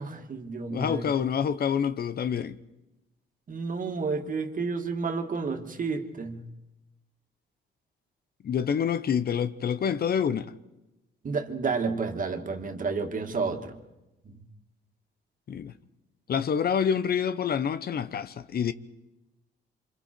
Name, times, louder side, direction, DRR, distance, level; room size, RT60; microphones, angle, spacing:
voice 1, 0.0-1.1 3.5-6.4 11.2-13.8 14.3-14.4, right 4 dB, 40° right, 2.2 m, -31 dB
voice 2, 0.7-2.6 8.4-10.5 15.5-15.7 16.3-18.7, left 7 dB, 50° left, 0.9 m, -27 dB
27.5 x 26.0 x 4.6 m
cardioid pair, 90°, 20 cm